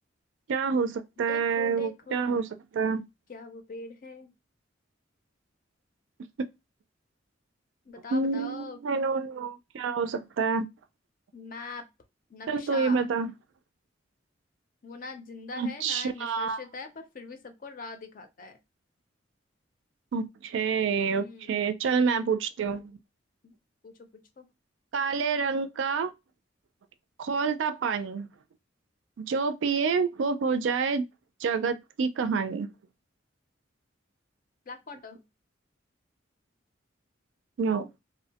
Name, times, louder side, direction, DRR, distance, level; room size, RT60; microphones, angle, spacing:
voice 1, 0.5-2.5 2.7-3.0 6.4-6.5 8.1-10.7 12.5-13.3 15.6-16.6 20.1-23.0 24.9-26.1 27.2-28.3 29.2-31.0 31.4-32.7 37.6-37.9, right 5 dB, 75° right, 0.4 m, -28 dB
voice 2, 1.3-2.4 3.3-4.3 7.8-8.8 11.3-11.9 12.3-13.0 14.8-18.6 21.1-21.8 23.4-23.5 23.8-24.5 34.7-35.2, left 3 dB, 45° left, 0.5 m, -42 dB
2.6 x 2.1 x 2.8 m
head